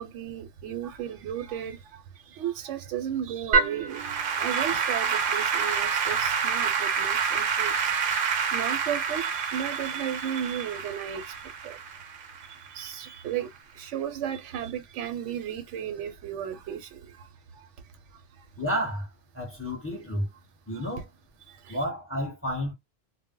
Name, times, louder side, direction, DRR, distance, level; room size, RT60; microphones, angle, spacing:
voice 1, 0.0-11.8 12.1-18.5 19.7-19.8 20.7-20.9 21.4-21.8, right 9 dB, 85° right, 0.9 m, -35 dB
Applause / Keyboard (musical), 3.5-12.9, right 6 dB, 60° right, 0.6 m, -27 dB
voice 2, 18.6-19.1 19.3-20.3 20.7-21.0 21.7-22.7, equal, 10° left, 0.8 m, -30 dB
2.1 x 2.0 x 3.6 m
omnidirectional pair, 1.2 m